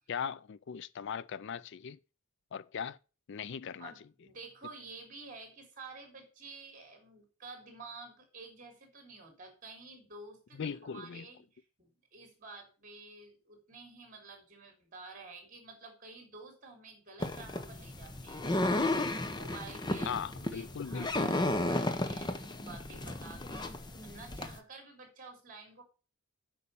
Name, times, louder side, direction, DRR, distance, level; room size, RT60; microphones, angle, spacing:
voice 1, 0.1-2.0 2.5-3.0 3.3-3.9 10.5-11.3 20.0-21.4, left 7 dB, 55° left, 0.4 m, -39 dB
voice 2, 3.8-11.5 11.8-18.8 19.4-20.2 20.5-25.8, right 3 dB, 35° right, 3.7 m, -50 dB
sound 1, 17.2-24.6, left 1 dB, 20° left, 0.8 m, -33 dB
8.4 x 5.5 x 7.0 m
head